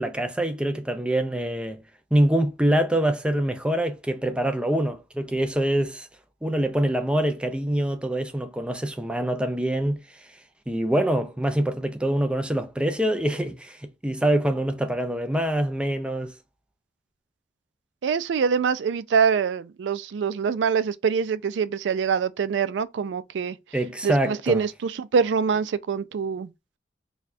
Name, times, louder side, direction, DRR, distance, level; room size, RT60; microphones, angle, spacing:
voice 1, 0.0-1.8 2.1-6.1 6.4-10.0 10.7-16.3 23.7-24.6, right 1 dB, 5° right, 0.4 m, -25 dB
voice 2, 18.0-23.6 24.0-26.5, right 6 dB, 85° right, 0.3 m, -24 dB
4.1 x 2.3 x 2.6 m
head